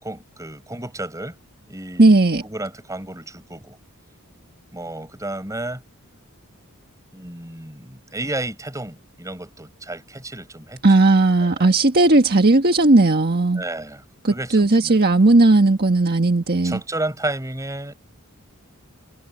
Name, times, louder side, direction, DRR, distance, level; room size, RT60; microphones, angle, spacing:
voice 1, 0.0-1.3 1.7-2.2 2.4-3.8 4.7-5.8 7.1-10.8 11.4-11.7 13.5-15.0 16.6-17.9, right 2 dB, 15° right, 5.2 m, -32 dB
voice 2, 2.0-2.4 10.8-13.6 14.2-16.8, right 2 dB, 45° right, 1.5 m, -16 dB
head